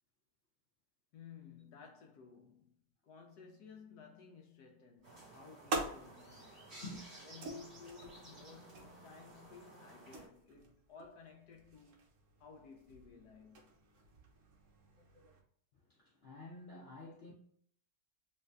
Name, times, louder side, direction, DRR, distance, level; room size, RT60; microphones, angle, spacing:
voice 1, 1.1-6.8 7.2-12.0 12.4-13.7, left 5 dB, 70° left, 1.0 m, -56 dB
sound 1, 5.0-10.3, right 1 dB, 40° right, 1.5 m, -55 dB
sound 2, 5.0-15.4, right 3 dB, 60° right, 0.9 m, -47 dB
voice 2, 15.9-17.3, left 2 dB, 90° left, 0.5 m, -49 dB
3.1 x 2.5 x 3.2 m
omnidirectional pair, 2.0 m